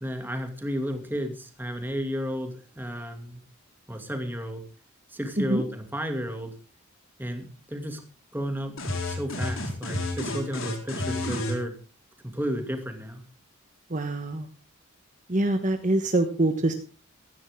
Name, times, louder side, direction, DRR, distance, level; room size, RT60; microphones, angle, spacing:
voice 1, 0.0-3.4 3.9-4.6 5.1-6.5 7.2-8.0 8.3-8.7 9.0-11.7 12.2-13.2, equal, 10° right, 5 dB, 2.5 m, -32 dB
sound 1, 8.8-11.6, left 2 dB, 70° left, 4.6 m, -30 dB
voice 2, 13.9-14.5 15.3-16.7, right 1 dB, 35° right, 7 dB, 1.3 m, -25 dB
16.5 x 15.0 x 3.7 m, 0.34 s
head